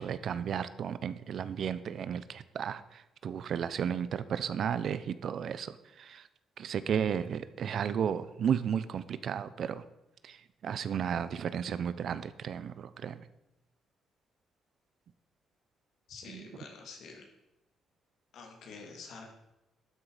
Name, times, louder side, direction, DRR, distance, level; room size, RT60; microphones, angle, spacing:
voice 1, 0.0-6.3 6.6-9.8 10.2-13.3 16.3-16.5, right 8 dB, 60° right, 14 dB, 0.8 m, -34 dB
voice 2, 16.1-17.3 18.3-19.3, left 4 dB, 75° left, 2 dB, 3.1 m, -47 dB
12.0 x 9.8 x 5.1 m, 0.91 s
cardioid pair, 90°, 0 cm